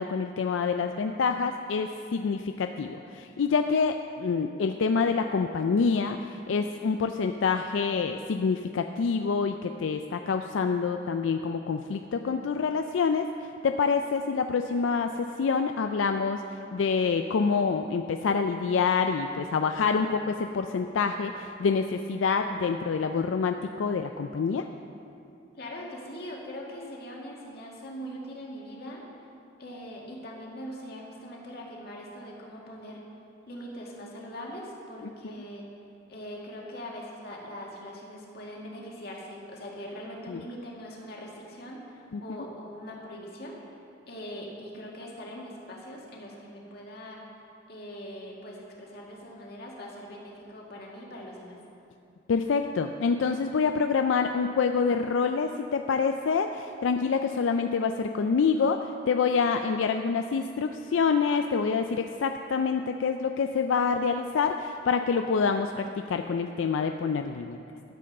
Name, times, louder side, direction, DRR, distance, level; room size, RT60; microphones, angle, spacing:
voice 1, 0.0-16.4 16.7-24.6 35.2-35.3 40.3-40.4 42.1-42.2 52.3-58.8 59.1-67.6, left 5 dB, 85° left, 6 dB, 0.4 m, -27 dB
voice 2, 25.6-29.0 29.6-33.0 33.5-35.7 36.1-43.7 44.1-47.2 47.7-51.6, equal, 55° left, -2 dB, 2.0 m, -41 dB
13.0 x 7.7 x 5.4 m, 2.6 s
head